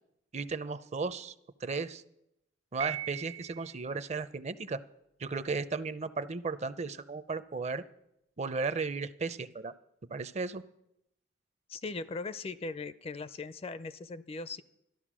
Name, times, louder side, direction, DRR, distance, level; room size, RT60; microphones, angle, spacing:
voice 1, 0.3-1.3 1.6-2.0 2.7-4.8 5.2-7.8 8.4-9.7 10.1-10.6, right 4 dB, 35° right, 13 dB, 0.5 m, -35 dB
Piano, 2.8-3.9, right 12 dB, 85° right, 0.9 m, -39 dB
voice 2, 11.7-14.6, left 3 dB, 30° left, 14 dB, 0.4 m, -39 dB
13.0 x 12.0 x 6.2 m, 0.83 s
head